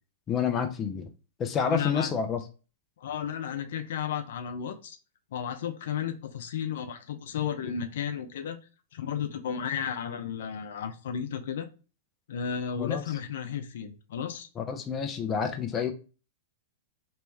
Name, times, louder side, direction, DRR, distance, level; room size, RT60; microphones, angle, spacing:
voice 1, 0.3-1.1 1.4-2.4 12.8-13.0 14.6-15.9, left 6 dB, 20° left, 0.6 m, -29 dB
voice 2, 1.6-2.1 3.0-5.0 5.3-8.6 8.9-11.7 12.3-14.5, left 8 dB, 75° left, 0.5 m, -33 dB
3.1 x 3.0 x 3.4 m
hypercardioid pair, 140°, 0 cm